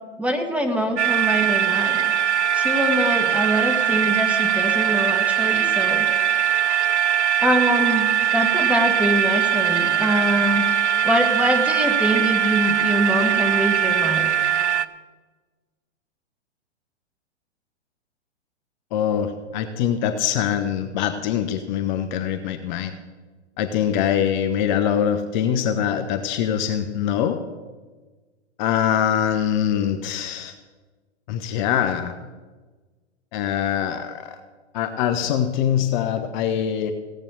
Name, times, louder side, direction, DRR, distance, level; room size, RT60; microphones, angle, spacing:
voice 1, 0.2-2.1 2.5-6.1 7.4-10.7 11.0-14.3, right 1 dB, 5° right, 4 dB, 1.7 m, -24 dB
sound 1, 1.0-14.9, right 9 dB, 75° right, 0.8 m, -21 dB
voice 2, 18.9-22.9 23.6-27.4 28.6-30.5 31.3-32.1 33.3-34.3 34.7-36.9, left 9 dB, 40° left, 8 dB, 1.1 m, -23 dB
16.5 x 8.8 x 6.4 m, 1.3 s
hypercardioid pair, 115°, 35 cm